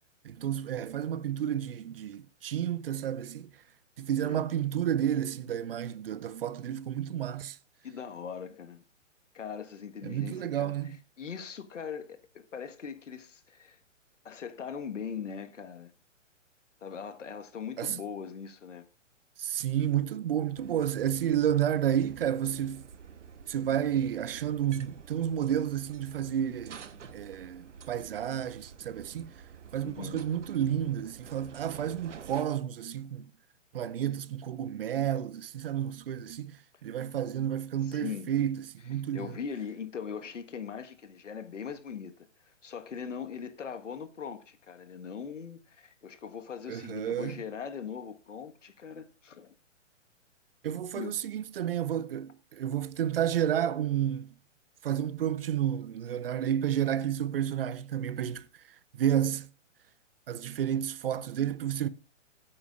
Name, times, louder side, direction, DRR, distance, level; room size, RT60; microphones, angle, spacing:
voice 1, 0.2-3.5 4.0-7.6 10.0-11.0 17.8-18.0 19.4-22.9 23.5-26.8 27.1-29.3 29.7-33.3 33.7-36.5 36.8-39.3 46.7-47.4 50.6-54.3 54.8-58.5 58.9-59.5 60.3-61.9, right 10 dB, 50° right, 0.7 m, -31 dB
voice 2, 7.8-8.8 9.3-13.8 14.2-15.9 16.8-18.9 29.8-30.3 37.8-38.3 39.1-49.5 50.9-51.1, left 7 dB, 70° left, 1.5 m, -40 dB
sound 1, 20.6-32.5, right 7 dB, 70° right, 1.1 m, -49 dB
15.5 x 8.6 x 2.5 m
figure-of-eight pair, 130°, 38 cm